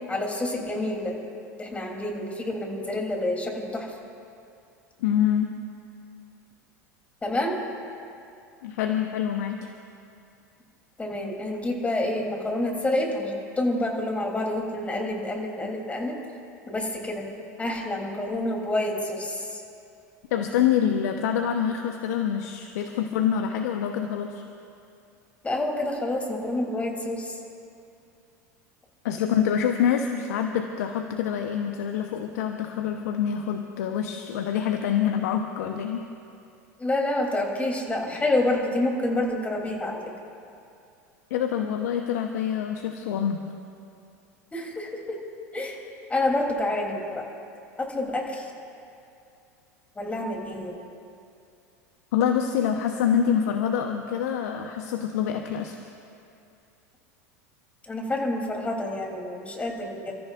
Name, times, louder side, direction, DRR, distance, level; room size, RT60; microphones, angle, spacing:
voice 1, 0.1-1.2 1.6-3.9 7.2-7.6 11.0-16.2 16.7-17.3 17.6-19.6 25.4-27.4 36.8-40.0 44.5-45.2 45.5-45.8 46.1-47.2 47.8-48.5 50.0-50.8 57.9-60.1, left 1 dB, 15° left, 0 dB, 3.4 m, -28 dB
voice 2, 5.0-5.5 8.6-9.7 20.3-24.4 29.0-36.1 41.3-43.4 52.1-55.9, left 8 dB, 70° left, 4 dB, 1.0 m, -26 dB
30.0 x 14.0 x 2.6 m, 2.5 s
hypercardioid pair, 85°, 9 cm